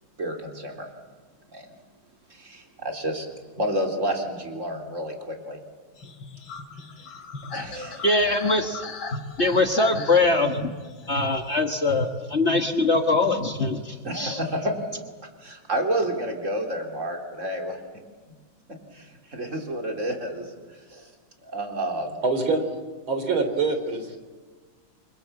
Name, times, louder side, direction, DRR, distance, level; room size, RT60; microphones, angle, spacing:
voice 1, 0.2-0.9 1.5-1.7 2.3-3.3 3.6-5.6 7.5-8.0 14.0-14.9 15.4-17.8 18.9-20.5 20.9-21.1 21.4-22.2, right 1 dB, 35° right, 2 dB, 4.1 m, -30 dB
sound 1, 6.0-12.4, left 4 dB, 75° left, 3.0 m, -40 dB
voice 2, 8.0-8.8 9.1-10.7 11.1-14.4, left 2 dB, 35° left, 5 dB, 1.5 m, -22 dB
voice 3, 22.2-22.6 23.1-24.2, right 3 dB, 85° right, 7 dB, 4.2 m, -24 dB
29.5 x 24.5 x 7.6 m, 1.4 s
omnidirectional pair, 2.2 m